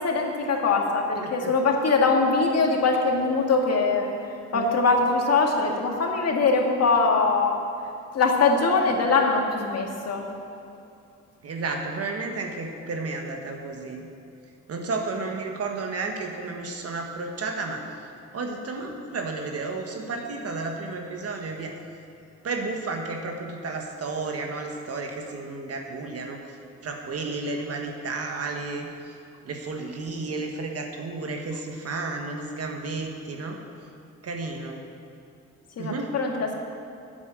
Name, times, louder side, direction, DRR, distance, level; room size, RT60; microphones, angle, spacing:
voice 1, 0.0-7.6 8.1-10.2 35.8-36.5, left 4 dB, 55° left, 1 dB, 1.9 m, -22 dB
voice 2, 1.2-1.5 4.5-4.7 11.4-14.1 14.7-17.8 18.3-21.8 22.4-26.6 26.8-29.1 29.4-33.6 34.2-34.8 35.8-36.1, right 3 dB, 50° right, 3 dB, 1.4 m, -32 dB
9.9 x 8.6 x 7.7 m, 2.5 s
cardioid pair, 90°, 30 cm